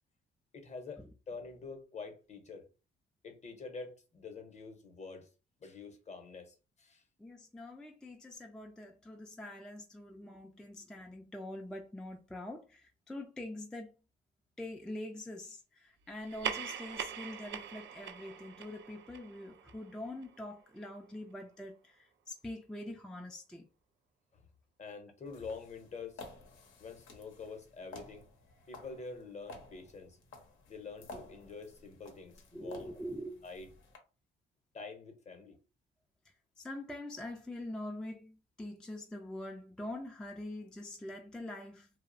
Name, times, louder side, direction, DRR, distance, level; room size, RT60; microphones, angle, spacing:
voice 1, 0.5-2.6 3.2-5.3 5.6-7.0 24.3-24.5 24.8-26.2 26.8-28.3 28.7-30.2 30.7-32.9 33.4-33.7 34.7-35.6, left 4 dB, 35° left, 0.7 m, -46 dB
voice 2, 7.2-13.9 14.6-23.7 32.5-33.4 36.6-41.9, left 1 dB, 5° left, 0.3 m, -44 dB
sound 1, 16.2-21.1, right 8 dB, 65° right, 0.4 m, -43 dB
sound 2, 25.3-34.0, left 3 dB, 85° left, 0.7 m, -53 dB
2.6 x 2.0 x 2.5 m
cardioid pair, 90°, 20 cm